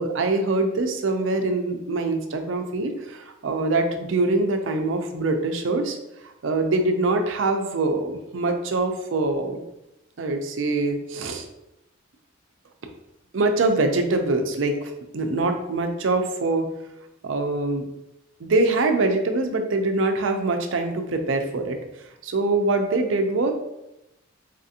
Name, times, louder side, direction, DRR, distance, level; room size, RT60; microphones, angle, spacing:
voice 1, 0.0-6.0 6.2-9.6 10.2-11.5 13.3-16.7 17.2-17.8 18.4-23.5, right 2 dB, 70° right, 5 dB, 0.5 m, -24 dB
4.1 x 2.5 x 2.7 m, 0.88 s
head